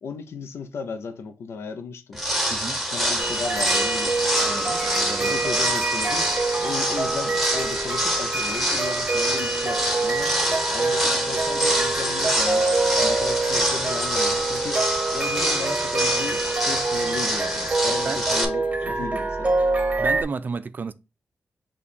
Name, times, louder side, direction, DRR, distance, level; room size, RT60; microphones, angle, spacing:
voice 1, 0.0-2.2 2.9-4.8 5.2-6.3 6.6-10.3 10.7-12.7 13.0-14.8 15.1-19.6, left 5 dB, 85° left, 0.5 m, -35 dB
sound 1, 2.1-18.4, equal, ahead, 1.0 m, -26 dB
sound 2, 3.2-20.2, right 3 dB, 30° right, 0.7 m, -26 dB
voice 2, 4.4-5.4 18.0-18.2 18.9-19.1 20.0-20.9, right 5 dB, 45° right, 0.3 m, -33 dB
5.7 x 2.3 x 4.1 m
wide cardioid pair, 100°, 4 cm